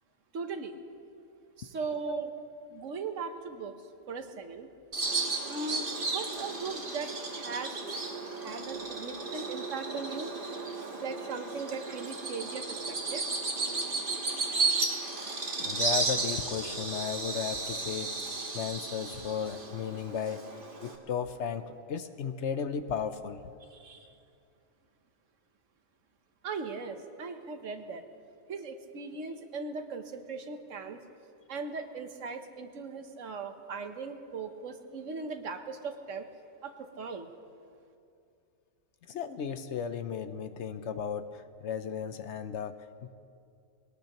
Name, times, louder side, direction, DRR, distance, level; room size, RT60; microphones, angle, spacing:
voice 1, 0.3-0.8 1.6-2.3 2.7-3.7 4.1-4.7 5.4-7.8 8.3-10.3 11.0-13.2 14.6-14.8 23.7-24.1 26.4-28.0 28.5-31.0 31.5-36.2 36.6-37.3, right 4 dB, 65° right, 7 dB, 1.3 m, -39 dB
voice 2, 2.1-2.4 15.6-18.1 18.5-20.4 20.8-23.4 39.1-43.1, left 7 dB, 65° left, 10 dB, 0.9 m, -35 dB
Bird vocalization bird call bird song, 4.9-21.0, right 3 dB, 40° right, 1.5 m, -34 dB
22.0 x 18.0 x 3.0 m, 2.5 s
omnidirectional pair, 1.4 m